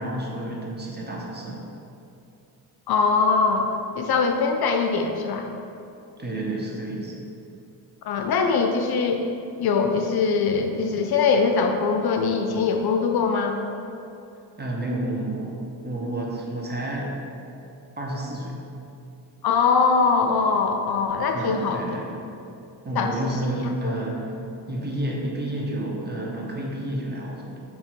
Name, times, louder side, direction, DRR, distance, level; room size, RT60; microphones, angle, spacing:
voice 1, 0.0-1.7 6.2-7.1 14.6-15.6 15.8-17.2 18.0-18.6 21.3-22.3 22.8-24.3 24.7-27.6, right 1 dB, 25° right, -2 dB, 1.1 m, -30 dB
voice 2, 2.9-3.7 4.0-5.5 8.0-9.3 9.6-13.6 19.4-21.9 23.0-23.3 23.8-23.9, left 5 dB, 60° left, 4 dB, 0.6 m, -22 dB
7.4 x 2.9 x 4.4 m, 2.7 s
cardioid pair, 75°, 43 cm